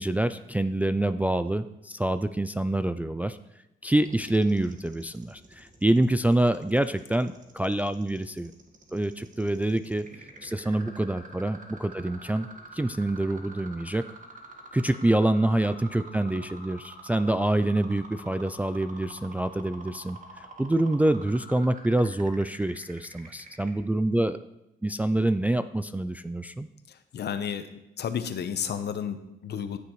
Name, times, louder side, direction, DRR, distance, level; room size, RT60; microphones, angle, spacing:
voice 1, 0.0-3.4 3.8-8.5 8.9-10.0 10.4-12.5 12.7-14.0 14.7-24.4 24.8-26.7, right 1 dB, 10° right, 10 dB, 0.3 m, -26 dB
sound 1, 4.0-23.7, right 3 dB, 40° right, 1.6 m, -47 dB
voice 2, 26.9-27.7 28.0-29.8, left 8 dB, 55° left, 10 dB, 0.8 m, -32 dB
14.5 x 6.7 x 3.1 m, 0.91 s
cardioid pair, 90°, 20 cm